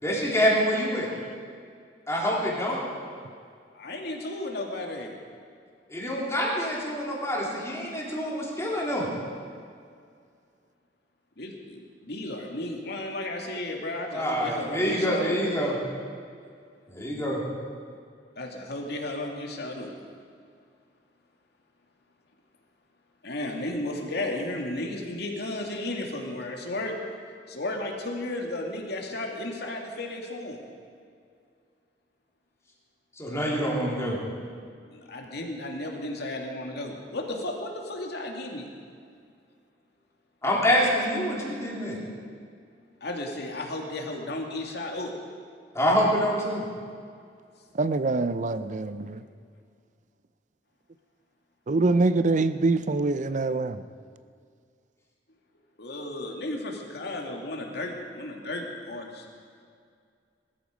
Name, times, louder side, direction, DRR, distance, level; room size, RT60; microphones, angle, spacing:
voice 1, 0.0-1.1 2.1-2.8 5.9-9.1 14.1-15.7 16.9-17.4 33.2-34.2 40.4-42.0 45.7-46.6, equal, 15° left, -4 dB, 3.6 m, -26 dB
voice 2, 3.7-5.1 11.4-15.4 18.4-19.9 23.2-27.0 27.5-30.6 34.9-38.7 43.0-45.1 55.8-59.3, left 1 dB, 65° left, 1 dB, 2.4 m, -34 dB
voice 3, 47.8-49.2 51.7-53.8, right 3 dB, 45° right, 12 dB, 0.6 m, -24 dB
20.5 x 13.0 x 5.2 m, 2.2 s
head